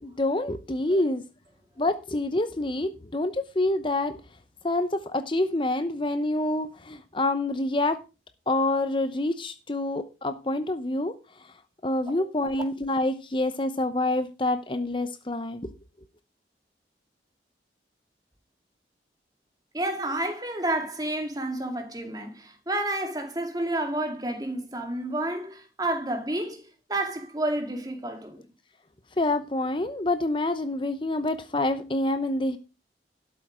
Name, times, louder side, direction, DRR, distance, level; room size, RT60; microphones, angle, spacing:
voice 1, 0.0-1.2 1.8-4.2 4.6-8.0 8.5-11.1 11.8-15.7 29.2-32.6, left 2 dB, 30° left, 0.8 m, -27 dB
voice 2, 19.7-28.4, right 1 dB, 20° right, 2.2 m, -30 dB
12.5 x 7.8 x 5.0 m
head